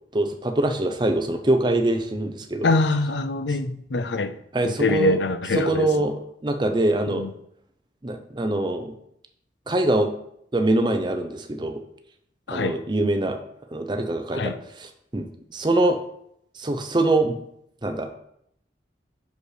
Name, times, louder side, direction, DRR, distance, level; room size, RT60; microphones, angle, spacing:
voice 1, 0.1-2.7 4.5-5.2 5.5-6.1 6.4-7.2 8.0-8.9 9.7-10.1 10.5-11.8 12.5-13.4 13.7-14.5 15.1-16.0 16.6-17.4 17.8-18.1, right 2 dB, 25° right, 0.6 m, -23 dB
voice 2, 2.6-4.4 4.6-5.9 7.1-7.4 12.5-12.8 14.3-14.6, left 3 dB, 80° left, 0.6 m, -24 dB
6.4 x 5.1 x 4.9 m
head